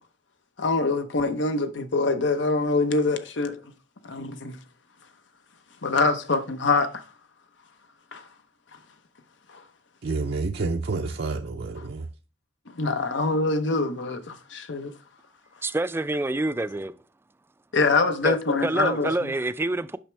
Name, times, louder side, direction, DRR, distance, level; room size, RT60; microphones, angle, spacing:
voice 1, 0.6-3.6 4.0-4.6 5.8-7.0 8.1-8.3 9.5-9.6 11.8-11.9 12.7-14.9 17.7-19.3, left 3 dB, 90° left, 0.9 m, -24 dB
voice 2, 10.0-12.0, right 3 dB, 65° right, 0.6 m, -29 dB
voice 3, 15.6-16.9 18.2-20.0, right 2 dB, 15° right, 0.3 m, -27 dB
8.8 x 6.1 x 3.4 m
head